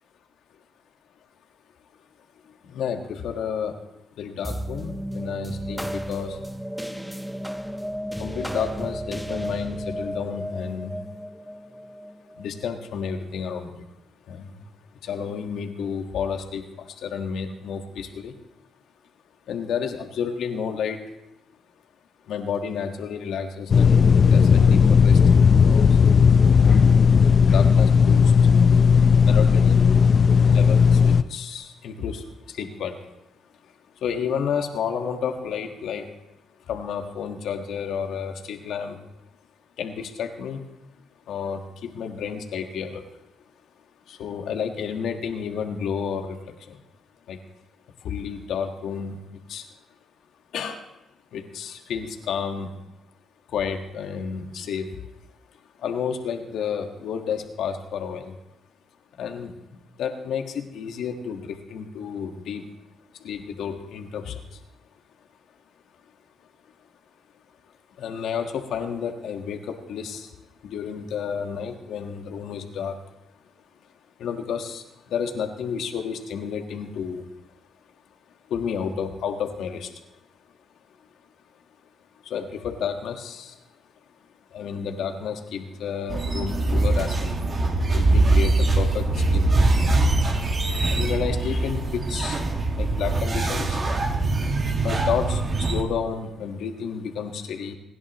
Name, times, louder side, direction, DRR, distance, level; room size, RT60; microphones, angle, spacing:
voice 1, 2.4-3.8 4.2-6.4 8.2-11.0 12.3-13.9 14.3-14.7 15.0-18.4 19.5-21.0 22.3-25.2 25.5-26.0 27.5-28.4 29.2-30.0 30.4-33.0 33.6-36.1 36.7-39.0 39.8-40.6 41.3-43.0 44.1-46.8 47.3-47.4 48.0-49.2 49.5-49.7 50.5-50.8 51.3-52.7 53.5-55.0 55.8-58.4 59.2-62.7 63.1-64.6 68.0-70.3 70.6-73.0 74.2-77.3 78.4-80.1 82.2-83.6 84.5-90.0 90.8-92.4 92.7-94.4 94.7-97.7, left 7 dB, 75° left, 5 dB, 1.6 m, -31 dB
sound 1, 4.4-13.2, equal, ahead, 0.9 m, -33 dB
sound 2, 23.7-31.2, left 6 dB, 45° left, 0.6 m, -15 dB
sound 3, 86.1-95.8, right 2 dB, 40° right, 2.1 m, -22 dB
28.5 x 11.0 x 3.1 m, 0.93 s
cardioid pair, 90°, 0 cm